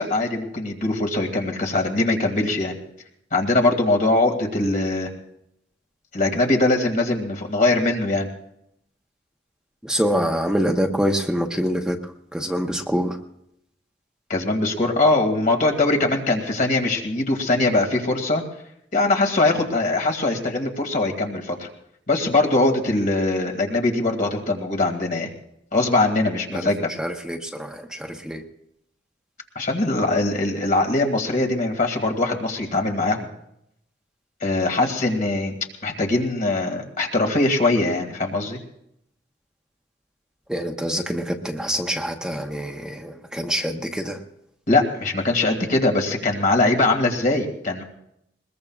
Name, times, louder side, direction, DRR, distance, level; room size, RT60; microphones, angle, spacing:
voice 1, 0.0-2.7 3.3-5.1 6.1-8.3 14.3-18.4 18.9-21.7 22.1-25.3 25.7-26.9 29.6-33.3 34.4-35.5 35.8-38.6 44.7-47.8, left 2 dB, 50° left, 3 dB, 2.3 m, -21 dB
voice 2, 9.8-13.2 26.5-28.4 40.5-44.2, equal, 5° right, 2 dB, 0.9 m, -26 dB
21.5 x 21.0 x 2.4 m, 0.77 s
head